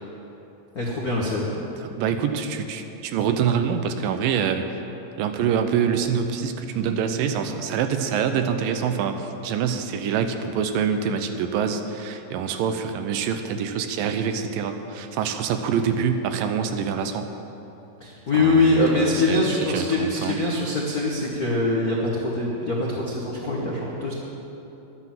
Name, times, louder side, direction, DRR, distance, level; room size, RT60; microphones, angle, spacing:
voice 1, 0.7-1.5 18.0-24.1, left 2 dB, 75° left, -4 dB, 0.8 m, -23 dB
voice 2, 1.6-4.8 5.2-17.3 18.3-20.4 23.6-23.7, right 7 dB, 80° right, 7 dB, 2.4 m, -26 dB
12.0 x 9.9 x 7.4 m, 2.9 s
omnidirectional pair, 4.1 m